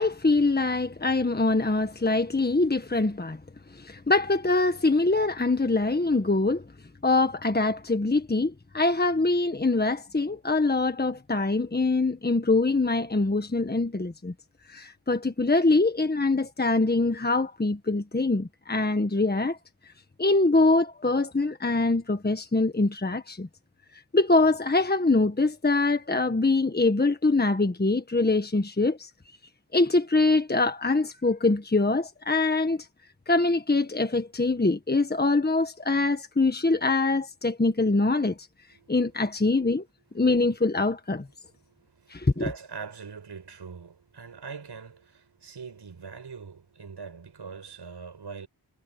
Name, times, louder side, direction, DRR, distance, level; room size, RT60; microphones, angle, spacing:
voice 1, 0.0-3.4 3.7-6.6 7.0-14.3 14.7-19.6 20.2-23.5 24.1-29.1 29.7-32.8 33.3-38.3 38.9-39.8 40.1-41.2 42.1-42.4, left 3 dB, 25° left, 1.6 m, -24 dB
voice 2, 38.7-39.1 39.4-39.5 41.5-48.5, right 5 dB, 75° right, 6.6 m, -42 dB
cardioid pair, 50°, 41 cm